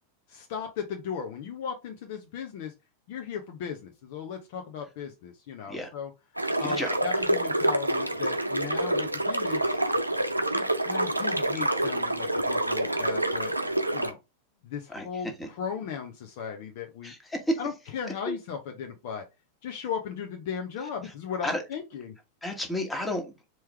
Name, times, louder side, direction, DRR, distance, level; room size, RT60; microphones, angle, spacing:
voice 1, 0.3-2.7 3.1-6.1 6.6-9.8 10.5-13.5 13.9-14.2 14.6-17.1 17.6-19.2 19.6-22.1, left 7 dB, 50° left, 0.8 m, -36 dB
sound 1, 6.4-14.1, right 1 dB, 85° right, 0.6 m, -27 dB
voice 2, 6.6-7.0 14.9-15.0 15.4-15.5 17.0-17.6 18.3-18.4 21.4-21.6 22.4-23.4, left 1 dB, 5° left, 1.3 m, -31 dB
4.6 x 3.1 x 3.4 m
figure-of-eight pair, 90°, 0 cm